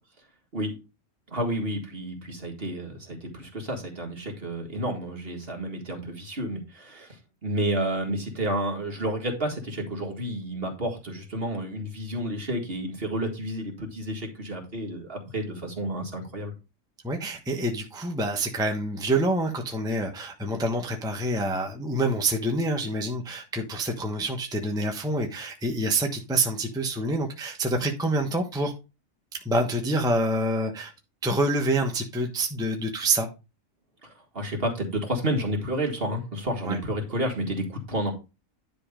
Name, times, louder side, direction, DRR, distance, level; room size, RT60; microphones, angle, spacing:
voice 1, 1.3-7.2 7.4-16.5 34.0-38.1, right 1 dB, 45° right, 2 dB, 2.1 m, -30 dB
voice 2, 17.0-28.7 29.4-30.9 31.2-33.3 36.7-36.8, right 1 dB, 5° right, 3 dB, 1.0 m, -27 dB
10.5 x 3.5 x 5.1 m, 0.28 s
omnidirectional pair, 1.3 m